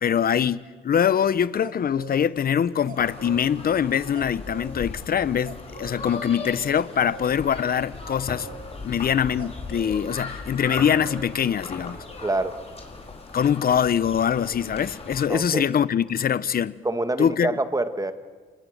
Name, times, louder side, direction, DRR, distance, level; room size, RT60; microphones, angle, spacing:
voice 1, 0.0-8.5 8.8-12.0 13.3-16.8 17.2-17.6, left 8 dB, 50° left, 0.9 m, -23 dB
sound 1, 1.2-3.4 3.7-3.8 4.1-12.0, right 6 dB, 45° right, 2.6 m, -45 dB
sound 2, 2.9-15.2, left 3 dB, 30° left, 4.9 m, -38 dB
voice 2, 12.2-12.6 15.3-15.6 16.8-18.1, right 2 dB, 15° right, 1.8 m, -26 dB
28.0 x 19.5 x 9.3 m
cardioid pair, 90°, 20 cm